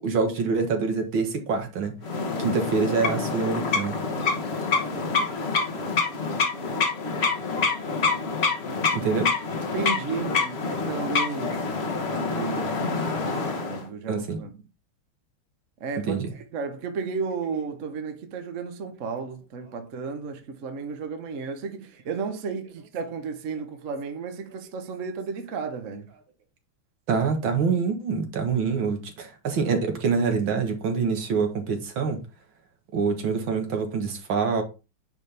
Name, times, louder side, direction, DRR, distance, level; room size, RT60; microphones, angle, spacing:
voice 1, 0.0-2.0 2.4-4.0 8.9-9.3 14.1-14.4 16.0-16.3 27.1-32.2 32.9-34.6, right 5 dB, 65° right, 2.0 m, -25 dB
sound 1, 2.0-13.8, left 4 dB, 40° left, 1.1 m, -27 dB
voice 2, 9.7-11.6 12.1-13.0 13.7-14.6 15.8-16.1 16.5-26.1, right 5 dB, 50° right, 1.0 m, -33 dB
9.5 x 4.2 x 3.4 m
omnidirectional pair, 2.3 m